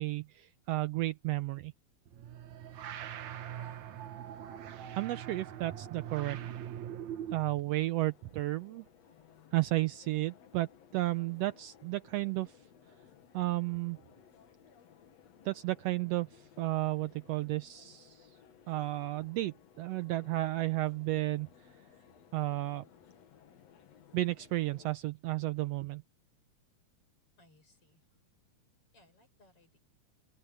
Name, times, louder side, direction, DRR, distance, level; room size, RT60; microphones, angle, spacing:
voice 1, 0.0-1.7 4.9-6.4 7.3-8.8 9.5-12.5 13.3-14.0 15.4-18.3 18.7-21.5 22.3-22.8 24.1-26.0, right 17 dB, 90° right, 1.4 m, -33 dB
sound 1, 2.1-7.6, right 10 dB, 70° right, 2.5 m, -42 dB
voice 2, 3.5-4.1 27.4-28.2 28.9-29.8, left 1 dB, 45° left, 7.6 m, -64 dB
sound 2, 6.2-25.0, left 8 dB, 60° left, 2.7 m, -60 dB
open air
omnidirectional pair, 3.4 m